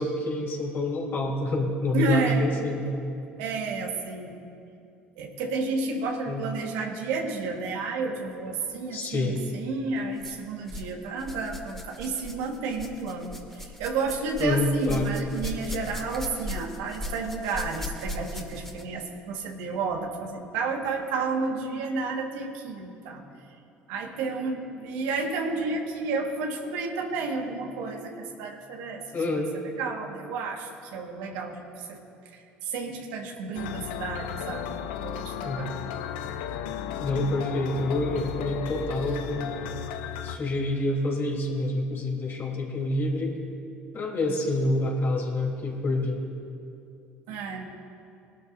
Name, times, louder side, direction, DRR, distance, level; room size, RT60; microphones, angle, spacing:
voice 1, 0.0-2.9 6.3-6.5 8.9-9.4 14.4-15.1 29.1-29.6 35.4-35.6 36.9-39.5 40.2-43.4 43.9-46.2, left 2 dB, 45° left, -1 dB, 3.6 m, -27 dB
voice 2, 1.9-2.5 3.4-4.5 5.2-23.2 23.9-29.0 29.8-32.0 32.3-35.8 47.3-47.7, right 4 dB, 75° right, 1 dB, 1.7 m, -31 dB
sound 1, 9.2-9.4 10.2-10.9 11.2-19.0 19.9-20.0 20.8-20.9, left 1 dB, 5° left, 2.3 m, -38 dB
sound 2, 33.5-40.4, left 9 dB, 75° left, 0.6 m, -34 dB
21.5 x 12.5 x 2.7 m, 2.5 s
hypercardioid pair, 60°, 5 cm